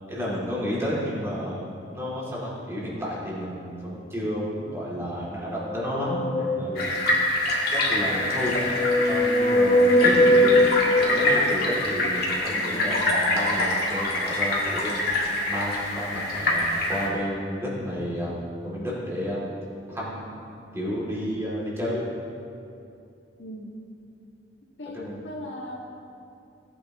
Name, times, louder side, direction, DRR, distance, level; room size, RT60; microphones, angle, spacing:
voice 1, 0.1-7.0 7.7-8.5 9.1-10.5 10.9-15.0 15.5-19.5 19.9-20.4 20.7-22.1 24.9-25.2, equal, 15° right, -7 dB, 2.8 m, -31 dB
sound 1, 5.6-7.3 8.1-12.0, left 1 dB, 30° left, 0.4 m, -22 dB
sound 2, 6.7-17.1, left 1 dB, 55° left, 2.1 m, -25 dB
voice 2, 9.9-10.7 23.4-23.8 24.8-25.8, equal, 80° left, -3 dB, 1.9 m, -37 dB
18.0 x 9.2 x 3.1 m, 2.6 s
head